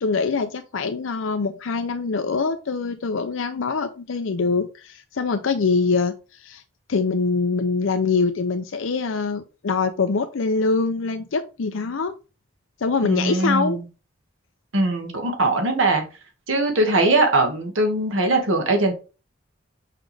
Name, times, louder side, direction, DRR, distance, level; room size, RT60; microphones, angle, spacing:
voice 1, 0.0-6.6 6.9-12.2 12.8-13.8, left 4 dB, 85° left, 8 dB, 0.6 m, -24 dB
voice 2, 13.0-13.8 14.7-16.0 16.5-18.9, right 2 dB, 90° right, 3 dB, 2.0 m, -21 dB
5.9 x 5.0 x 3.4 m, 0.32 s
head